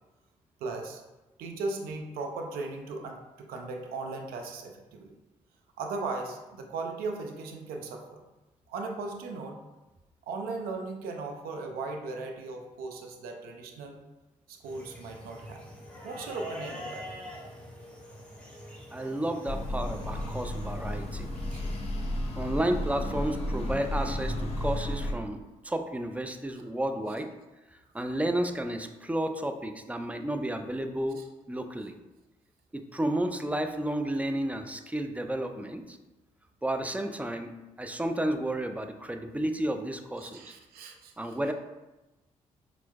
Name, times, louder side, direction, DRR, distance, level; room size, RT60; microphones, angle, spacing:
voice 1, 0.6-1.0 1.4-5.2 5.8-8.2 8.7-9.6 10.3-14.0 14.5-15.7 16.0-17.1 21.5-21.6 26.6-26.7 31.2-31.3 40.2-41.4, right 3 dB, 70° right, 3 dB, 0.5 m, -37 dB
sound 1, 14.6-21.8, equal, 5° left, 1.0 m, -45 dB
voice 2, 18.9-21.3 22.4-25.4 25.6-27.3 27.7-31.2 31.5-31.9 32.7-36.0 36.6-40.5 41.2-41.5, right 1 dB, 10° right, 6 dB, 0.3 m, -32 dB
sound 2, 19.5-25.1, left 1 dB, 40° left, 0.6 m, -33 dB
4.3 x 2.0 x 2.3 m, 1.0 s
hypercardioid pair, 40°, 16 cm